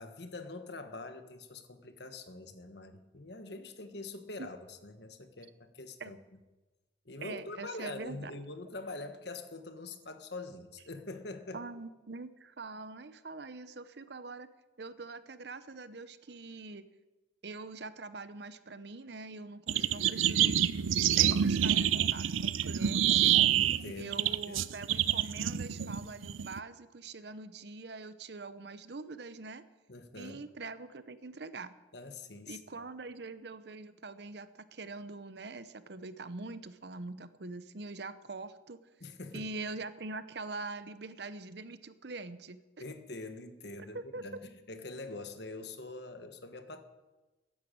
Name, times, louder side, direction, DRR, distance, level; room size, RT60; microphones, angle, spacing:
voice 1, 0.0-6.2 7.0-11.6 19.7-20.0 23.6-24.6 29.9-30.4 31.9-32.6 39.0-39.5 42.8-46.8, left 3 dB, 55° left, 8 dB, 1.4 m, -44 dB
voice 2, 7.2-8.3 11.5-14.5 14.8-16.9 17.4-20.5 21.0-23.4 24.0-29.6 30.2-31.7 32.5-38.8 39.3-42.6 43.9-44.2, right 3 dB, 55° right, 13 dB, 0.8 m, -43 dB
sound 1, 19.7-26.6, right 10 dB, 90° right, 0.5 m, -27 dB
14.0 x 10.5 x 8.7 m, 1.1 s
head